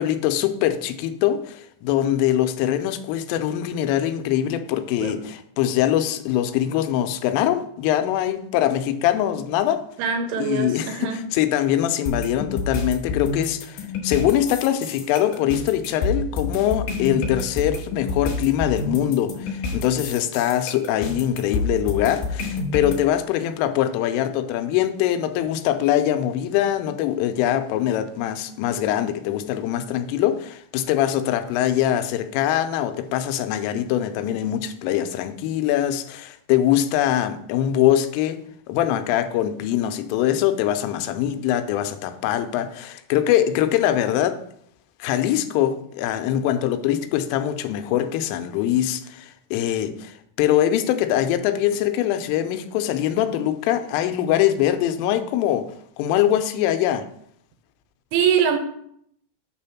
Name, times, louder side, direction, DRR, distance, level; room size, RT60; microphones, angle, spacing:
voice 1, 0.0-9.8 10.4-38.4 38.7-44.4 45.0-55.7 56.0-57.1, left 11 dB, 90° left, 9 dB, 3.2 m, -23 dB
voice 2, 10.0-11.2 58.1-58.6, right 7 dB, 80° right, 6 dB, 3.0 m, -23 dB
sound 1, 12.1-23.0, left 3 dB, 70° left, 3.1 m, -28 dB
8.2 x 3.4 x 5.7 m, 0.69 s
omnidirectional pair, 5.6 m